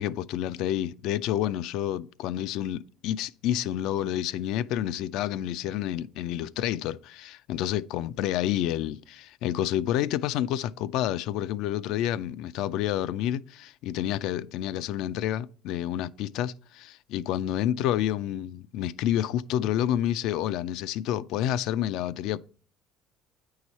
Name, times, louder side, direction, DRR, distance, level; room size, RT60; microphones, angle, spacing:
voice 1, 0.0-22.4, left 11 dB, 75° left, 0.4 m, -29 dB
8.9 x 4.8 x 4.1 m
cardioid pair, 115°, 0 cm